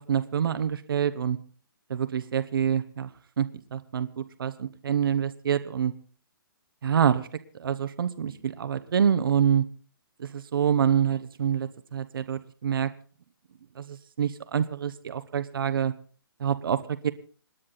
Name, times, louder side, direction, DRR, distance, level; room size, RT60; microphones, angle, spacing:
voice 1, 0.1-1.4 1.9-3.1 3.4-5.9 6.8-7.3 7.6-9.6 10.2-12.9 13.8-15.9 16.4-17.1, right 8 dB, 70° right, 11 dB, 1.1 m, -26 dB
27.5 x 9.7 x 4.1 m, 0.41 s
hypercardioid pair, 160°, 12 cm